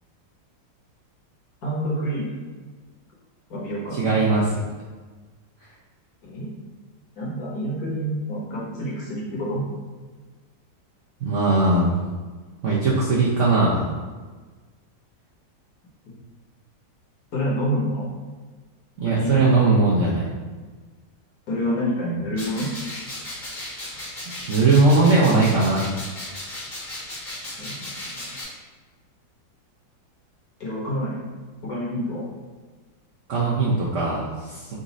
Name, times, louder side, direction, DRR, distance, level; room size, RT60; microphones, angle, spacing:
voice 1, 1.6-2.3 3.5-4.2 6.2-6.5 7.2-9.6 17.3-18.1 19.0-19.6 21.5-22.7 27.6-27.7 30.6-31.2 31.6-32.2, equal, 60° left, -5 dB, 1.4 m, -27 dB
voice 2, 3.9-4.6 11.2-11.9 12.6-13.9 19.0-20.3 24.5-25.8 33.3-34.8, right 3 dB, 65° right, -6 dB, 0.7 m, -19 dB
sound 1, 22.3-28.4, left 1 dB, 35° left, 0.9 m, -35 dB
4.0 x 2.5 x 3.9 m, 1.4 s
omnidirectional pair, 2.0 m